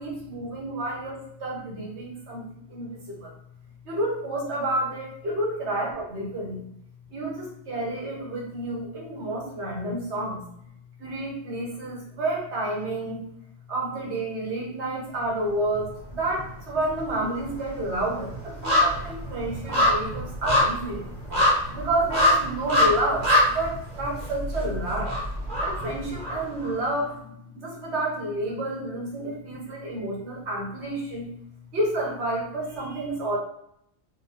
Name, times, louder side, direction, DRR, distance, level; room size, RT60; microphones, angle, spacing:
voice 1, 0.0-3.3 3.9-6.7 7.1-10.4 11.0-13.2 13.7-21.0 21.7-25.2 25.6-31.3 31.7-33.4, right 1 dB, 90° right, -2 dB, 1.3 m, -30 dB
sound 1, 15.7-16.5 16.7-26.7 27.1-27.2, left 1 dB, 40° right, 1.3 m, -25 dB
4.5 x 2.0 x 2.8 m, 0.72 s
omnidirectional pair, 1.1 m